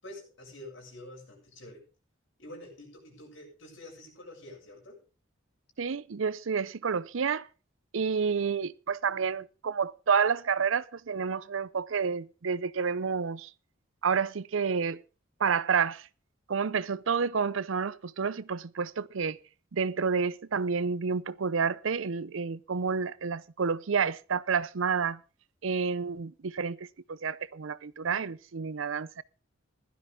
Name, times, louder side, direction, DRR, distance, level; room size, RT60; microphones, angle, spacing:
voice 1, 0.0-1.9 2.4-5.0, left 1 dB, 60° left, 7.6 m, -47 dB
voice 2, 5.8-7.5 7.9-13.5 14.0-15.0 15.4-16.1 16.5-19.4 19.7-25.2 25.6-29.2, right 6 dB, 70° right, 0.6 m, -29 dB
16.0 x 12.5 x 3.6 m
head